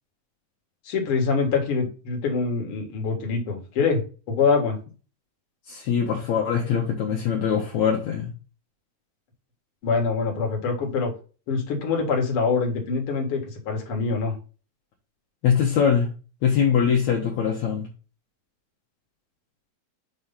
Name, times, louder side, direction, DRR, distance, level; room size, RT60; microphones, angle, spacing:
voice 1, 0.9-4.8 9.8-11.1 11.5-14.3, left 4 dB, 45° left, 2 dB, 2.3 m, -24 dB
voice 2, 5.7-8.3 15.4-16.1 16.4-17.9, left 7 dB, 65° left, -1 dB, 2.2 m, -22 dB
6.7 x 3.2 x 5.5 m, 0.35 s
omnidirectional pair, 4.0 m